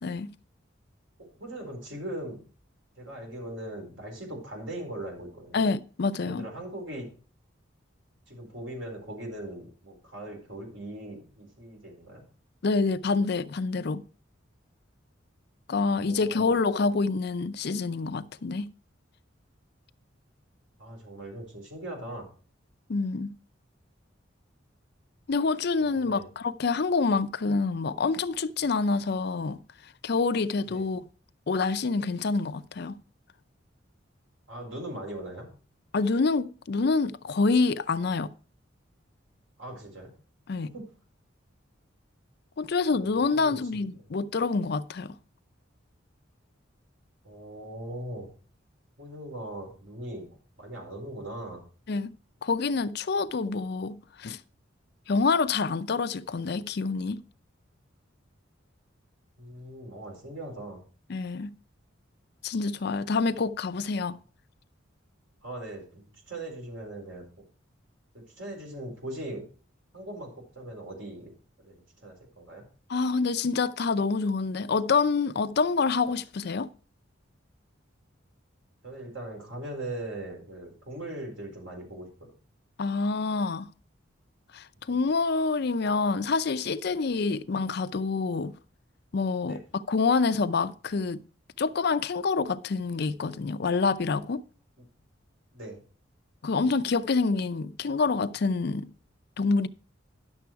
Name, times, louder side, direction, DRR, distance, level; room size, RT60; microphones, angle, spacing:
voice 1, 0.0-0.3 5.5-6.5 12.6-14.0 15.7-18.7 22.9-23.3 25.3-29.6 30.0-31.1 31.5-33.0 35.9-38.3 40.5-40.7 42.6-45.2 51.9-52.1 52.4-54.4 55.1-57.2 61.1-61.5 62.4-64.2 72.9-76.7 82.8-83.7 84.5-88.5 89.1-91.2 91.6-94.4 96.4-98.9 99.4-99.7, left 4 dB, 55° left, 0.5 m, -27 dB
voice 2, 1.4-2.4 3.0-5.6 6.2-7.1 8.3-12.2 15.8-16.6 20.8-22.3 25.8-26.3 30.7-30.8 34.5-35.5 39.6-40.1 40.6-40.9 42.9-43.6 47.2-48.3 49.0-51.6 59.4-60.8 65.4-67.3 68.1-69.5 69.9-71.3 71.6-72.6 78.8-82.3 89.4-89.6 95.5-95.8, right 1 dB, 70° right, 4.3 m, -40 dB
11.0 x 6.9 x 4.6 m
head